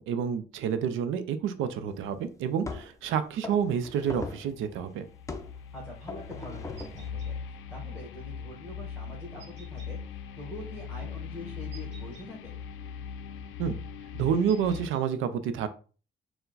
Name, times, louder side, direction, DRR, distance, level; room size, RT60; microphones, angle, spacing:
voice 1, 0.0-5.0 13.6-13.8 14.1-15.7, right 8 dB, 85° right, 11 dB, 0.5 m, -29 dB
sound 1, 1.9-2.0 2.6-3.0 3.4-4.5 5.3-5.6 6.1-7.1, left 3 dB, 15° left, 0.5 m, -39 dB
sound 2, 4.3-14.9, left 7 dB, 85° left, 0.5 m, -40 dB
voice 2, 5.7-9.4 9.7-10.0 10.4-12.6, left 1 dB, ahead, -3 dB, 1.5 m, -44 dB
sound 3, 6.8-7.3 9.4-9.9 11.7-12.3 14.5-15.0, right 6 dB, 65° right, 1.2 m, -53 dB
4.4 x 2.1 x 3.9 m, 0.38 s
cardioid pair, 90°, 20 cm